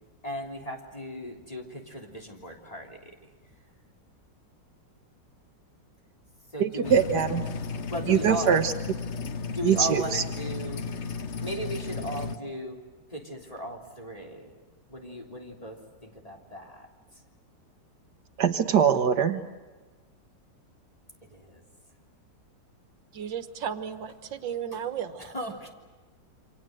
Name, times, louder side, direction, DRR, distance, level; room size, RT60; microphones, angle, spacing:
voice 1, 0.2-3.3 6.5-7.0 7.9-8.6 9.5-10.9 11.4-12.8 13.1-14.5 14.9-17.2 21.3-21.6 24.7-24.8 25.2-25.7, equal, 20° left, 1 dB, 3.4 m, -37 dB
voice 2, 6.6-7.4 8.1-8.7 9.6-10.2 18.4-19.4, right 7 dB, 65° right, 8 dB, 1.6 m, -22 dB
sound 1, 6.8-12.4, left 5 dB, 45° left, 1.1 m, -34 dB
voice 3, 23.1-25.3, right 8 dB, 85° right, 10 dB, 2.0 m, -34 dB
28.5 x 26.0 x 7.8 m, 1.3 s
omnidirectional pair, 2.0 m